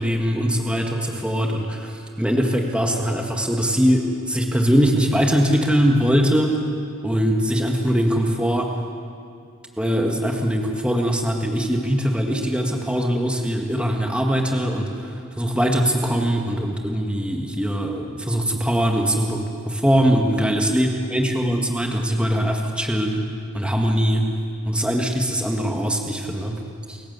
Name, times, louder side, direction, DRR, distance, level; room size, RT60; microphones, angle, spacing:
voice 1, 0.0-6.5 7.0-8.7 9.8-23.2 23.5-24.3 24.6-26.6 26.9-27.0, equal, 5° right, 1 dB, 1.8 m, -21 dB
29.0 x 15.5 x 8.3 m, 2.5 s
head